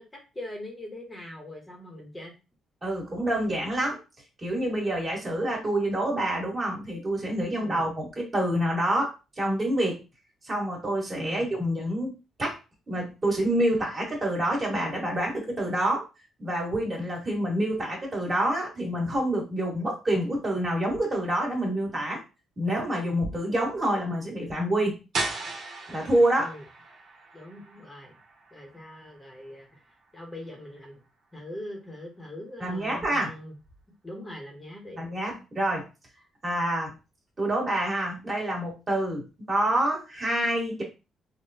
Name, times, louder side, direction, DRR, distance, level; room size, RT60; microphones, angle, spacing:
voice 1, 0.0-2.3 7.6-7.9 11.1-11.5 26.4-26.6 27.3-28.1 28.5-29.8 30.1-31.0 31.3-33.5 34.0-35.0, left 1 dB, 20° left, 0 dB, 0.9 m, -41 dB
voice 2, 2.8-4.0 4.4-10.0 10.5-12.6 12.9-16.0 16.4-22.2 22.6-25.0 25.9-26.5 32.6-33.3 35.0-35.9 36.4-36.9 37.4-40.8, right 1 dB, 30° right, -2 dB, 1.7 m, -27 dB
sound 1, 25.1-30.8, right 2 dB, 70° right, 0.9 m, -38 dB
3.6 x 2.2 x 2.7 m, 0.29 s
cardioid pair, 90°, 0 cm